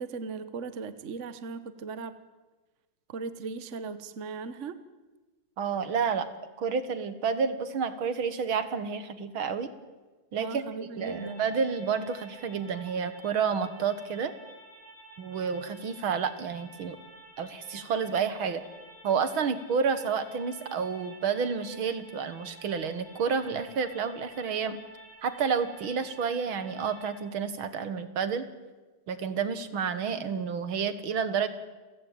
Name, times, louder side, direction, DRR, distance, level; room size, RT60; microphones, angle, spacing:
voice 1, 0.0-2.2 3.1-4.8 10.4-11.4, right 4 dB, 40° right, 12 dB, 1.2 m, -38 dB
voice 2, 5.6-6.3 6.6-9.7 10.3-10.6 11.0-14.3 15.2-17.0 17.4-18.6 19.0-24.8 25.2-28.5 29.1-31.5, right 6 dB, 70° right, 12 dB, 2.2 m, -30 dB
sound 1, 11.0-27.2, right 1 dB, 25° right, 6.4 m, -51 dB
29.0 x 15.5 x 9.2 m, 1.2 s
omnidirectional pair, 2.4 m